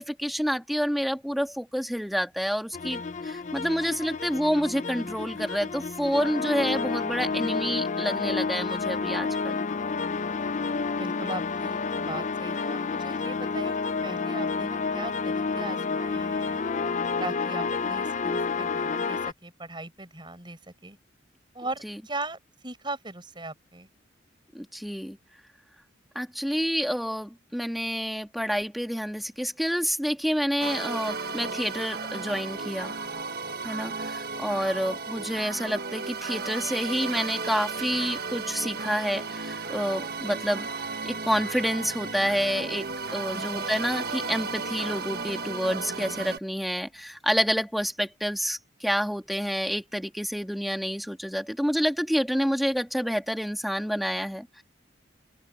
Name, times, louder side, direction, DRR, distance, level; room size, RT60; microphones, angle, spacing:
voice 1, 0.0-9.7 21.8-22.0 24.5-25.2 26.2-32.9 33.6-40.7 41.1-54.6, equal, ahead, 2.1 m, -28 dB
sound 1, 2.7-19.3, left 4 dB, 40° left, 0.5 m, -30 dB
voice 2, 11.0-13.8 14.0-16.6 17.2-21.0 21.5-23.9 43.3-43.8, right 2 dB, 25° right, 6.8 m, -39 dB
sound 2, 30.6-46.4, right 4 dB, 55° right, 1.4 m, -34 dB
open air
head